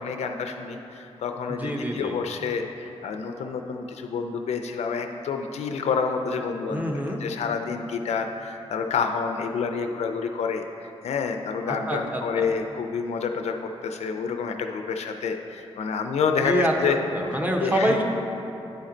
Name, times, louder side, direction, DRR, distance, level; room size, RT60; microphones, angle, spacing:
voice 1, 0.0-17.0 17.3-18.0, left 5 dB, 85° left, 5 dB, 0.4 m, -28 dB
voice 2, 1.5-2.1 6.7-7.2 11.7-12.5 16.4-18.0, equal, 15° right, 1 dB, 0.7 m, -26 dB
9.3 x 4.3 x 3.8 m, 3.0 s
wide cardioid pair, 100°, 11 cm